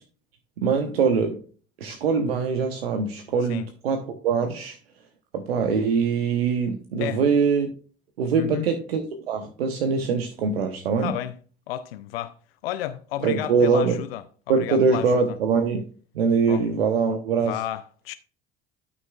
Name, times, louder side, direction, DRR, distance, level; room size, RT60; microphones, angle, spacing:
voice 1, 0.6-1.4 1.8-4.8 5.3-7.7 8.2-11.1 13.2-14.0 14.5-15.8 16.1-17.6, right 5 dB, 80° right, 1.0 m, -23 dB
voice 2, 8.4-8.7 11.0-11.4 11.7-12.4 12.6-15.4 16.5-16.6 17.4-18.1, left 13 dB, 75° left, 0.6 m, -32 dB
12.5 x 6.0 x 2.4 m
hypercardioid pair, 65°, 30 cm